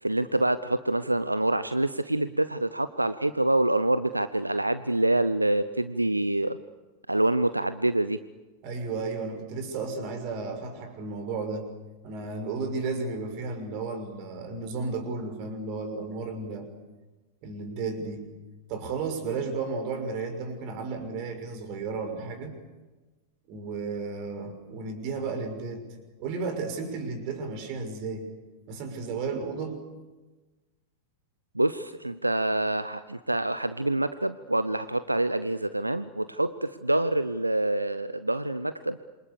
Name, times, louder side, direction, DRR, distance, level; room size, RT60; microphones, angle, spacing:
voice 1, 0.0-6.6 7.1-8.2 31.5-39.0, right 1 dB, 85° right, 13 dB, 0.8 m, -26 dB
voice 2, 8.6-11.7 12.0-16.7 17.4-18.3 18.7-22.5 23.5-25.8 26.2-28.3 28.7-29.8, right 4 dB, 45° right, 7 dB, 6.0 m, -33 dB
28.0 x 26.0 x 6.8 m, 1.2 s
figure-of-eight pair, 90°, 0 cm